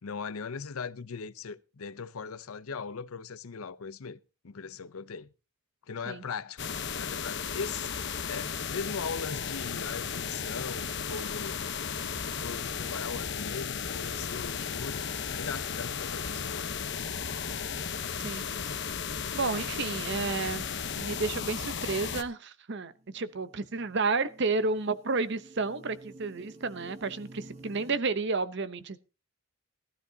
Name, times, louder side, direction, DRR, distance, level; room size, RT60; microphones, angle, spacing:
voice 1, 0.0-4.2 4.4-5.3 5.9-6.6 6.9-11.6 12.0-16.8 19.5-19.6, left 5 dB, 90° left, 0.7 m, -39 dB
sound 1, 6.6-22.2, left 6 dB, 55° left, 1.0 m, -35 dB
voice 2, 19.3-29.0, right 4 dB, 55° right, 0.8 m, -31 dB
sound 2, 22.9-28.0, right 2 dB, 30° right, 1.3 m, -51 dB
18.0 x 12.5 x 2.8 m
head